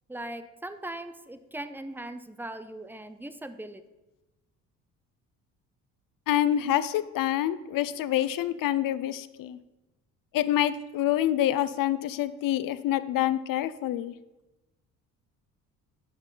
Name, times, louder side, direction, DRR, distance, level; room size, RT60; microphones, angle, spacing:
voice 1, 0.1-3.8, right 1 dB, 5° right, 10 dB, 0.5 m, -39 dB
voice 2, 6.3-9.6 10.3-14.1, left 12 dB, 50° left, 15 dB, 0.6 m, -27 dB
9.7 x 5.9 x 3.9 m, 1.0 s
hypercardioid pair, 55°, 42 cm